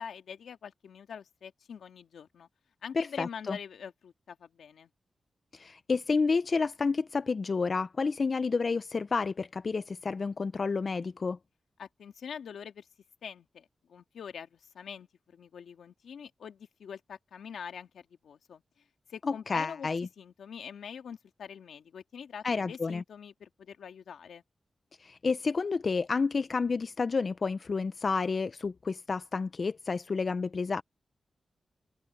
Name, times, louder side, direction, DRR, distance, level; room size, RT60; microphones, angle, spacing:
voice 1, 0.0-2.5 2.8-4.9 11.8-12.9 13.2-18.6 19.1-19.9 20.2-24.4, left 7 dB, 90° left, 1.9 m, -44 dB
voice 2, 3.0-3.6 5.5-11.4 19.3-20.1 22.4-23.0 25.0-30.8, left 4 dB, 55° left, 0.5 m, -30 dB
cardioid pair, 55°, 0 cm